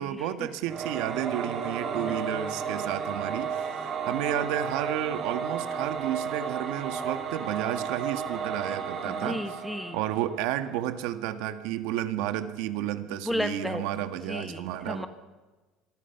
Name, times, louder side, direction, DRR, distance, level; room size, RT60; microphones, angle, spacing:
voice 1, 0.0-9.6 9.9-15.1, right 12 dB, 75° right, 10 dB, 1.7 m, -32 dB
Singing / Musical instrument, 0.7-10.7, right 6 dB, 30° right, 2.7 m, -33 dB
voice 2, 9.1-10.0 13.1-13.8 14.3-15.1, left 1 dB, 5° left, 8 dB, 1.6 m, -33 dB
27.0 x 22.5 x 5.9 m, 1.2 s
cardioid pair, 175°, 0 cm